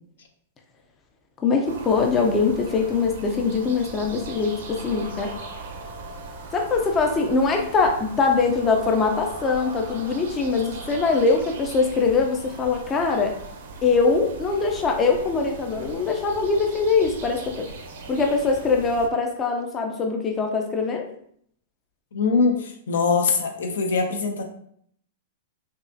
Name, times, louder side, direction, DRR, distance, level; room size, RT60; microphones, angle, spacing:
voice 1, 1.4-5.3 6.5-13.3 13.8-17.7 18.1-21.0, left 4 dB, 20° left, 2 dB, 0.5 m, -22 dB
sound 1, 1.6-19.1, right 3 dB, 70° right, 0.8 m, -39 dB
voice 2, 22.1-24.4, left 4 dB, 80° left, 4 dB, 0.8 m, -22 dB
5.3 x 2.4 x 2.6 m, 0.65 s
hypercardioid pair, 155°, 0 cm